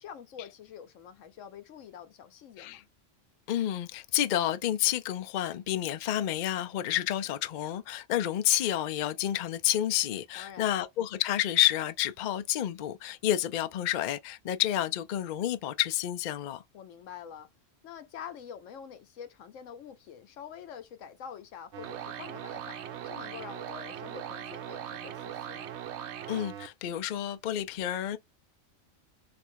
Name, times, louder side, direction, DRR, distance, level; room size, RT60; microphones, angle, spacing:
voice 1, 0.0-2.9 10.3-10.8 16.7-17.5 17.8-25.7, left 8 dB, 85° left, 1.1 m, -46 dB
voice 2, 3.5-16.6 26.3-28.2, left 12 dB, 65° left, 0.4 m, -29 dB
sound 1, 21.7-26.7, right 10 dB, 70° right, 0.8 m, -40 dB
3.3 x 2.6 x 4.4 m
omnidirectional pair, 1.3 m